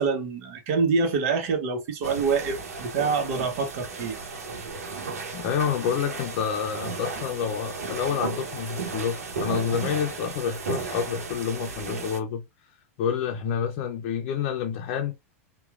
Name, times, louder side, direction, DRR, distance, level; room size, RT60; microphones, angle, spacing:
voice 1, 0.0-4.1 9.5-9.9, right 5 dB, 60° right, 1.0 m, -26 dB
sound 1, 2.0-12.2, right 4 dB, 85° right, 0.9 m, -35 dB
voice 2, 5.3-12.4 13.0-15.1, left 8 dB, 55° left, 0.5 m, -28 dB
3.0 x 2.3 x 2.4 m
hypercardioid pair, 110°, 8 cm